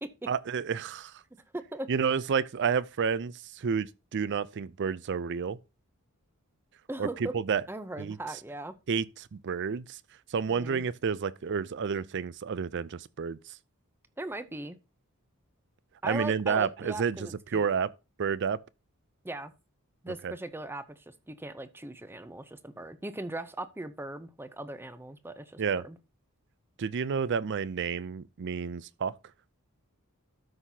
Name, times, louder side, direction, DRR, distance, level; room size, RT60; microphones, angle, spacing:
voice 1, 0.3-1.1 1.9-5.6 7.0-7.6 8.0-8.2 8.9-10.0 10.3-13.4 16.0-17.9 18.2-18.6 20.2-20.3 25.6-25.8 26.8-29.1, right 6 dB, 55° right, 0.4 m, -30 dB
voice 2, 1.5-1.9 6.9-7.3 7.7-8.8 10.5-10.8 14.2-14.8 16.0-17.7 19.2-19.5 20.0-26.0, right 1 dB, 10° right, 0.6 m, -39 dB
13.0 x 5.8 x 2.8 m
head